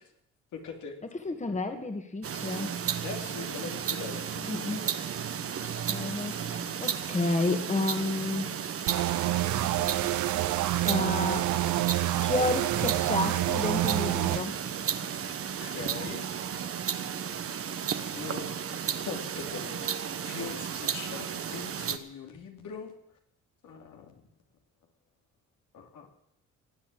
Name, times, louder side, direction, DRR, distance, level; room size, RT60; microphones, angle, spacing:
voice 1, 0.5-0.9 3.0-4.3 15.6-16.7 18.1-22.9 23.6-24.1 25.7-26.1, left 6 dB, 80° left, 3 dB, 2.9 m, -42 dB
voice 2, 1.2-2.7 4.4-4.9 5.6-8.5 10.8-11.5 12.1-14.6, left 2 dB, 25° left, 6 dB, 2.0 m, -31 dB
Ticking Clock, 2.2-22.0, right 8 dB, 50° right, 1.2 m, -34 dB
sound 1, 8.9-14.4, right 16 dB, 75° right, 0.5 m, -28 dB
18.5 x 8.0 x 8.6 m, 0.76 s
cardioid pair, 90°, 30 cm